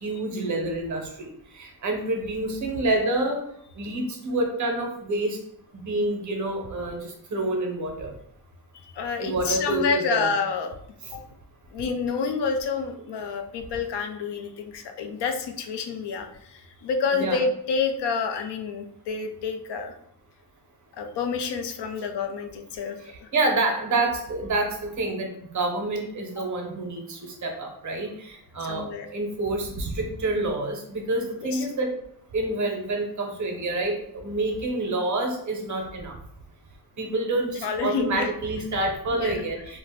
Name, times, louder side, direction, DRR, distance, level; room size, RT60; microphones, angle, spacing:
voice 1, 0.0-3.4 3.8-5.4 5.8-8.1 9.2-10.3 17.1-17.4 23.3-28.9 29.1-32.0 32.3-36.2 37.0-39.8, right 2 dB, 50° right, 3 dB, 0.6 m, -28 dB
voice 2, 8.8-10.7 11.1-11.2 11.7-19.9 20.9-23.3 26.4-26.5 28.6-29.1 31.4-31.7 37.6-38.3 39.1-39.3, left 5 dB, 85° left, 6 dB, 0.5 m, -28 dB
2.4 x 2.1 x 3.4 m, 0.71 s
wide cardioid pair, 170°, 40 cm